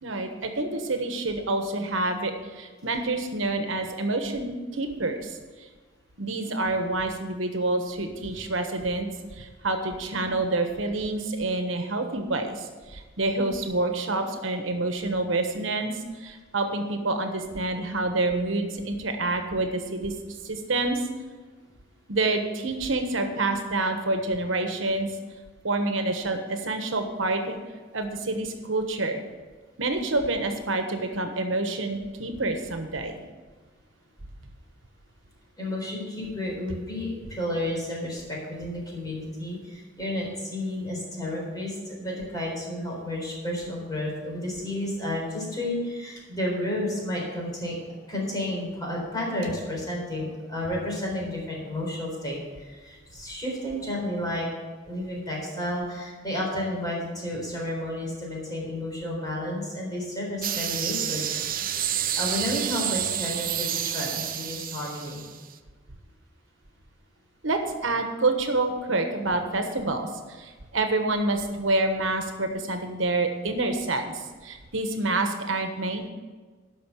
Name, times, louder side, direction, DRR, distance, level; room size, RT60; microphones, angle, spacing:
voice 1, 0.0-5.7 6.2-9.1 9.3-15.9 16.2-20.1 20.4-21.0 22.1-25.1 25.6-27.6 27.9-29.2 29.8-33.2 67.4-76.1, right 2 dB, 80° right, 5 dB, 1.2 m, -27 dB
voice 2, 35.6-47.8 48.1-54.5 54.8-61.3 61.9-65.2, left 1 dB, 20° left, -3 dB, 3.9 m, -31 dB
sound 1, 60.4-65.5, right 10 dB, 45° right, 0.6 m, -29 dB
12.5 x 5.6 x 7.1 m, 1.4 s
head